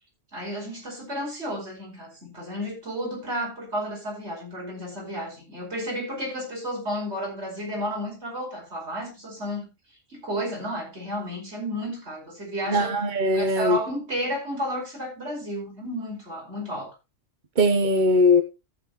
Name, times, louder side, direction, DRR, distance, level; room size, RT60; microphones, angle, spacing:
voice 1, 0.3-9.7 10.1-12.9 13.3-16.9, equal, 55° right, 5.5 m, -32 dB
voice 2, 12.7-13.8 17.6-18.4, left 1 dB, 40° right, 1.0 m, -20 dB
14.0 x 8.0 x 3.0 m
omnidirectional pair, 1.3 m